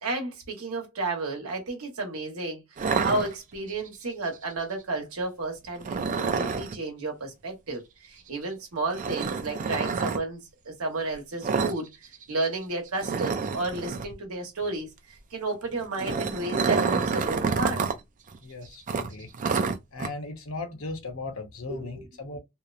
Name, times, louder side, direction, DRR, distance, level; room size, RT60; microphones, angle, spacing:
voice 1, 0.0-11.9 12.3-14.9 15.3-17.9 21.7-22.1, right 2 dB, 85° right, 1.0 m, -32 dB
sound 1, 2.8-3.8 5.8-6.7 8.9-10.2 11.4-11.8 12.0-12.2 12.5-12.6 13.0-14.1 15.7-18.0 18.3-18.4 18.9-20.1, right 5 dB, 35° right, 0.3 m, -28 dB
voice 2, 18.4-19.3 19.9-22.4, left 3 dB, 65° left, 0.8 m, -37 dB
2.8 x 2.0 x 2.4 m
head